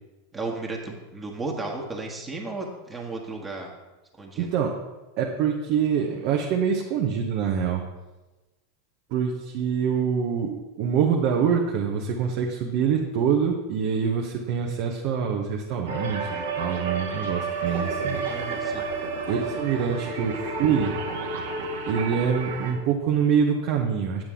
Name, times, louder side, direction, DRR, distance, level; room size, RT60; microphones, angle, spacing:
voice 1, 0.3-3.7 4.2-4.5 18.3-18.9, right 3 dB, 20° right, -1 dB, 1.4 m, -34 dB
voice 2, 4.4-4.8 5.2-7.8 9.1-18.2 19.3-20.9 21.8-24.2, right 7 dB, 55° right, 0 dB, 1.0 m, -25 dB
sound 1, 15.9-22.7, right 3 dB, 80° right, 1.2 m, -30 dB
8.2 x 7.4 x 3.7 m, 1.1 s
hypercardioid pair, 100°, 0 cm